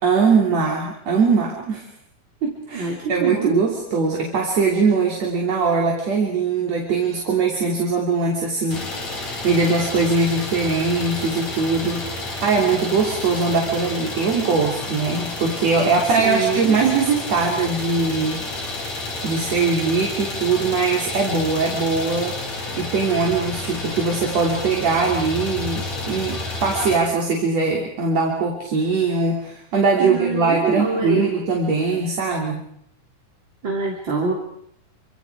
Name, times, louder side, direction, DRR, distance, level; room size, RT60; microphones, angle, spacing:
voice 1, 0.0-1.9 2.4-18.7 19.2-22.4 22.8-32.6, right 4 dB, 60° right, -1 dB, 4.3 m, -21 dB
voice 2, 2.7-3.6 16.2-16.7 30.0-31.4 33.6-34.3, right 4 dB, 40° right, -1 dB, 3.8 m, -24 dB
Idling, 8.7-27.0, left 2 dB, 60° left, 6.7 m, -30 dB
28.5 x 26.5 x 4.9 m, 0.71 s
omnidirectional pair, 3.5 m